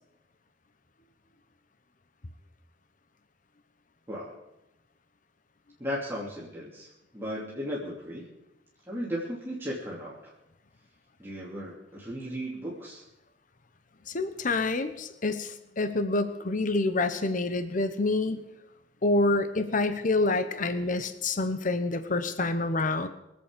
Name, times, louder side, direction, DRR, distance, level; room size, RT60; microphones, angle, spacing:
voice 1, 4.1-4.4 5.8-8.3 8.9-10.3 11.2-13.0, equal, 15° right, -6 dB, 2.8 m, -36 dB
voice 2, 14.1-18.4 19.0-23.1, left 2 dB, 45° left, 10 dB, 0.9 m, -27 dB
24.0 x 8.4 x 5.1 m, 0.92 s
head